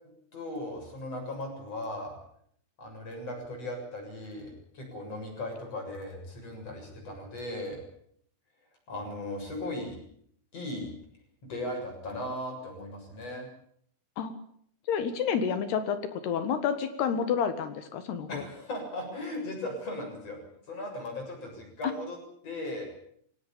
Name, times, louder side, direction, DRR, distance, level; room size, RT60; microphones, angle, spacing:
voice 1, 0.3-2.2 2.8-7.8 8.9-10.0 10.5-10.9 11.4-13.5 18.3-20.4 20.7-22.2 22.4-22.9, left 1 dB, 30° left, 2 dB, 8.0 m, -37 dB
voice 2, 14.9-18.4 21.8-21.9, left 7 dB, 65° left, 10 dB, 3.2 m, -29 dB
22.5 x 17.5 x 8.8 m, 0.66 s
omnidirectional pair, 5.6 m